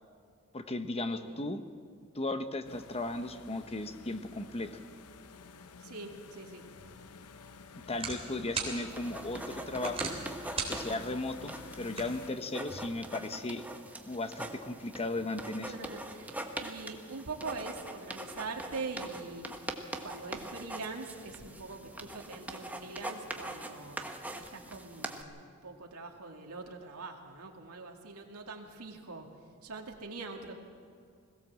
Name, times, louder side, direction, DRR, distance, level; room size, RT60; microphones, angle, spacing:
voice 1, 0.5-1.6 2.1-4.7 7.9-10.1 10.7-13.7 14.1-15.7, left 2 dB, 25° left, 9 dB, 1.0 m, -36 dB
voice 2, 1.1-1.5 5.8-6.6 15.7-19.4 20.0-24.0 24.3-29.3 29.6-30.6, right 3 dB, 85° right, 1 dB, 2.4 m, -43 dB
sound 1, 2.6-12.3, left 5 dB, 85° left, 0.8 m, -51 dB
sound 2, 6.8-12.8, right 4 dB, 25° right, 3.2 m, -42 dB
sound 3, 8.9-25.2, right 1 dB, 5° right, 1.2 m, -43 dB
21.5 x 16.5 x 7.5 m, 2.2 s
head